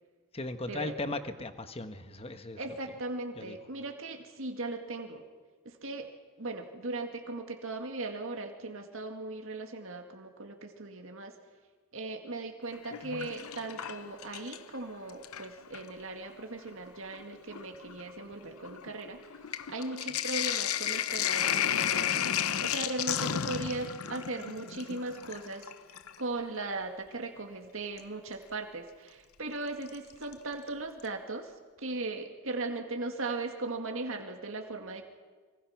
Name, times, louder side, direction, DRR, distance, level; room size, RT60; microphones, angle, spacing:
voice 1, 0.3-2.6 3.4-3.6, left 2 dB, 30° left, 9 dB, 1.2 m, -37 dB
voice 2, 2.6-5.2 5.6-6.1 6.4-11.3 11.9-35.0, right 2 dB, 65° right, 4 dB, 2.1 m, -38 dB
Sink (filling or washing), 12.7-14.8 15.1-15.9 16.7-16.8 17.1-26.2 28.0-28.1 29.9-30.3 30.7-30.8 31.0-31.1, left 9 dB, 85° left, 0.8 m, -33 dB
25.5 x 23.5 x 5.9 m, 1.4 s
head